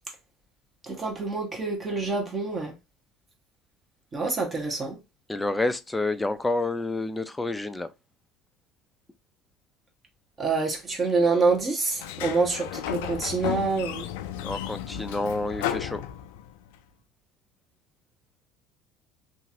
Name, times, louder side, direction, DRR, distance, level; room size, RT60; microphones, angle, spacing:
voice 1, 0.8-2.7 4.1-5.0 10.4-14.1, right 4 dB, 30° right, 1.1 m, -26 dB
voice 2, 5.3-7.9 14.4-16.0, left 2 dB, 10° left, 0.4 m, -29 dB
Sliding door, 11.9-16.7, left 10 dB, 80° left, 0.3 m, -34 dB
2.9 x 2.5 x 2.7 m
supercardioid pair, 85°, 0 cm